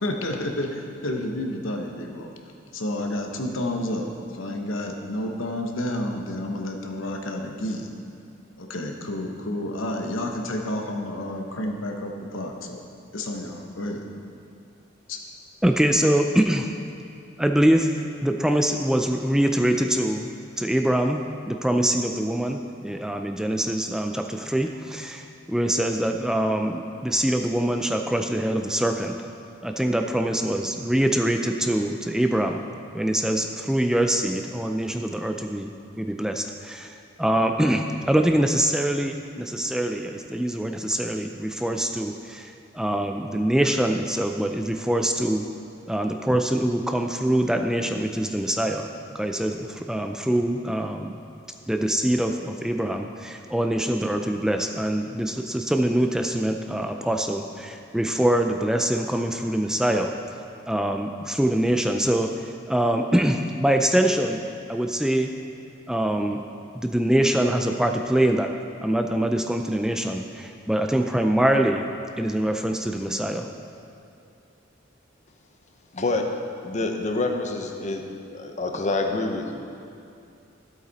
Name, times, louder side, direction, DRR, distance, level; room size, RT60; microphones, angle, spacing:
voice 1, 0.0-2.3 2.7-7.9 8.6-12.8 13.1-14.0 15.1-15.2, left 1 dB, 75° left, 2 dB, 1.1 m, -30 dB
voice 2, 15.6-16.7 17.4-17.9 18.2-20.3 20.6-21.2 21.5-29.2 29.6-32.6 32.9-35.7 36.0-45.5 45.9-48.9 49.1-51.2 51.7-60.1 60.7-64.4 64.7-65.3 65.9-66.4 66.7-68.5 68.8-71.9 72.2-73.5, right 1 dB, 5° right, 4 dB, 0.4 m, -24 dB
voice 3, 75.9-76.2 76.6-78.0 78.3-79.7, left 2 dB, 35° left, 3 dB, 0.9 m, -27 dB
13.5 x 8.1 x 4.1 m, 2.6 s
head